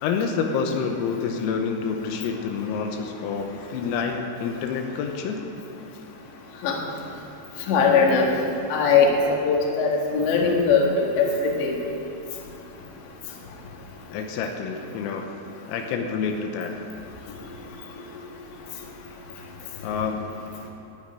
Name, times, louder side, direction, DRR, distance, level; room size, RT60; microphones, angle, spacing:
voice 1, 0.0-5.5 14.1-15.3 15.7-16.7 19.8-20.3, left 5 dB, 90° left, 3 dB, 3.8 m, -28 dB
voice 2, 7.7-8.3 8.7-9.1 9.4-11.8, left 5 dB, 65° left, -1 dB, 3.8 m, -20 dB
12.5 x 10.5 x 9.4 m, 2.8 s
omnidirectional pair, 5.9 m